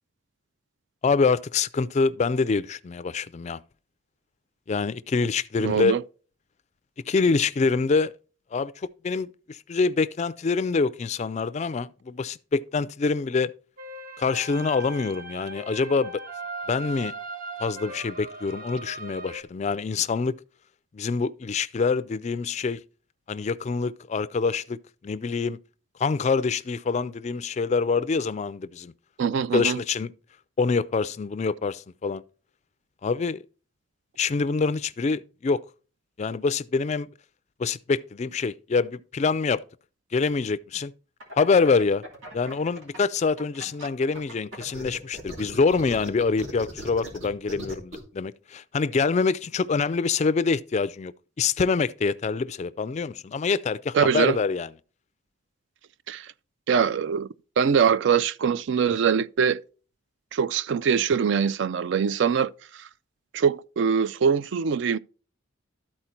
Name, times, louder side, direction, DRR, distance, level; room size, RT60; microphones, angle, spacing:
voice 1, 1.0-3.6 4.7-6.0 7.1-8.1 8.5-13.5 14.2-16.2 16.7-17.1 17.6-20.3 20.9-22.8 23.3-25.6 26.0-28.9 29.5-30.1 30.6-32.2 33.0-33.4 34.2-35.6 36.2-37.1 37.6-39.6 40.1-40.9 41.4-42.0 42.3-51.1 51.4-54.7, left 4 dB, 35° left, 0.3 m, -25 dB
voice 2, 5.6-6.0 29.2-29.8 53.9-54.4 56.1-56.3 56.7-57.3 57.6-59.6 60.3-62.5 63.3-65.0, right 6 dB, 60° right, 0.3 m, -23 dB
sound 1, 13.8-19.4, right 2 dB, 40° right, 0.8 m, -39 dB
sound 2, 41.2-43.0 43.4-48.0, right 1 dB, 75° right, 3.1 m, -38 dB
13.0 x 4.4 x 4.4 m
head